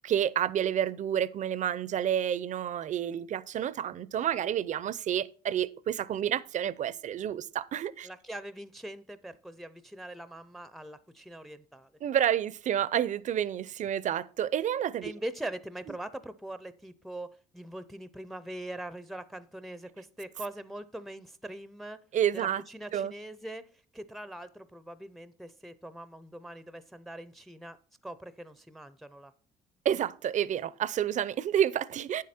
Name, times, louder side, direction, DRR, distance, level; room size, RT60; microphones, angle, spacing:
voice 1, 0.0-8.1 12.0-15.1 22.1-22.6 22.9-23.1 29.8-32.2, right 10 dB, 45° right, 0.5 m, -29 dB
voice 2, 8.0-11.9 15.0-22.0 22.3-23.6 23.9-27.8 28.0-29.3, right 1 dB, ahead, 0.5 m, -42 dB
9.1 x 7.5 x 4.3 m
cardioid pair, 110°, 17 cm